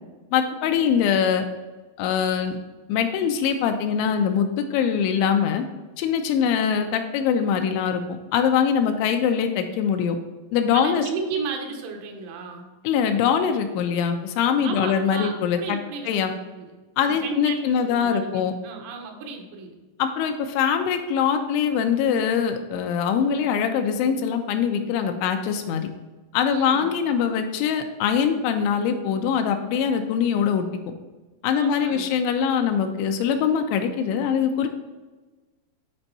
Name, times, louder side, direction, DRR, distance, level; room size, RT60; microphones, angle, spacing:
voice 1, 0.3-1.5 2.0-2.6 2.9-5.6 6.0-8.0 8.3-10.2 10.5-11.0 12.8-15.8 16.1-16.3 17.0-18.5 20.0-25.9 26.3-30.9 31.4-34.7, left 7 dB, 85° left, 6 dB, 2.9 m, -23 dB
voice 2, 10.7-12.7 14.6-16.7 17.0-19.8 26.5-26.9 31.5-32.2, right 4 dB, 80° right, 2 dB, 3.5 m, -34 dB
10.0 x 4.4 x 4.1 m, 1.2 s
omnidirectional pair, 5.5 m